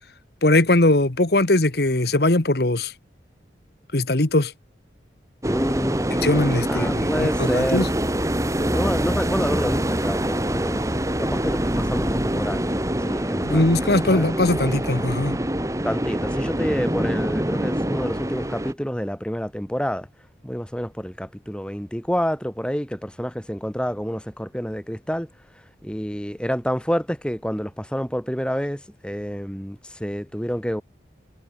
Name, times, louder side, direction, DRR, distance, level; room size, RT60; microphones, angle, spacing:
voice 1, 0.4-2.9 3.9-4.5 6.2-7.9 13.4-15.4, left 2 dB, 60° left, 1.5 m, -20 dB
voice 2, 5.4-6.1 6.7-7.9 8.6-10.9 11.2-13.6 14.1-14.3 15.8-20.1 20.4-25.3 25.8-30.8, equal, 5° left, 4.6 m, -28 dB
sound 1, 5.4-18.7, right 1 dB, 15° right, 2.0 m, -25 dB
head